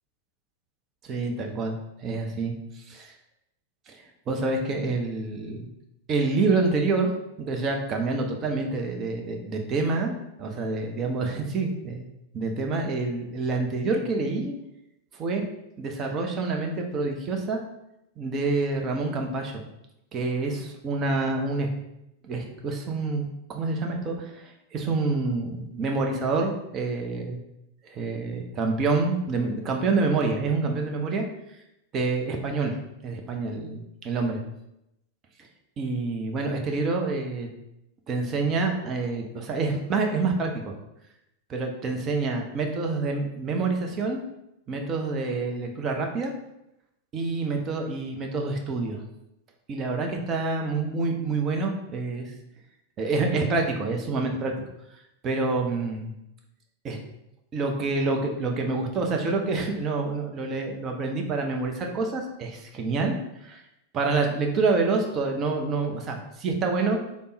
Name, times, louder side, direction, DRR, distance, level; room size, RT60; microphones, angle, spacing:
voice 1, 1.0-2.5 2.9-3.1 3.9-5.7 6.1-7.1 7.4-10.1 10.4-12.0 12.3-14.5 15.1-15.5 15.8-17.6 18.2-19.6 20.1-21.7 22.2-23.2 23.5-27.4 27.8-31.3 31.9-32.8 33.0-34.4 35.8-37.5 38.1-40.7 41.5-44.2 44.7-46.3 47.1-49.0 49.7-52.3 53.0-54.5 55.2-56.1 56.8-57.0 57.5-63.2 63.4-63.6 63.9-67.0, right 3 dB, 30° right, 2 dB, 0.6 m, -27 dB
3.4 x 2.0 x 4.0 m, 0.85 s
figure-of-eight pair, 90°, 0 cm